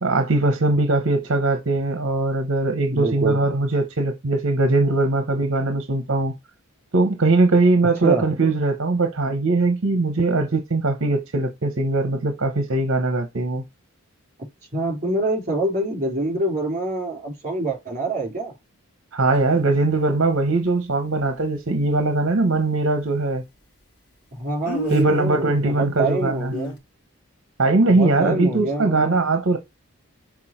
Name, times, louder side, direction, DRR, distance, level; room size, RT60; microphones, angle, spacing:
voice 1, 0.0-6.3 6.9-13.6 19.1-23.4 24.9-26.5 27.6-29.6, right 2 dB, 60° right, 0.9 m, -20 dB
voice 2, 2.9-3.4 8.0-8.3 14.7-18.5 24.4-26.7 27.9-29.2, right 2 dB, 35° right, 3.2 m, -25 dB
Speech, 19.3-19.4 24.6-25.3 26.5-26.8, equal, 90° left, 1.7 m, -29 dB
6.0 x 4.6 x 4.4 m
head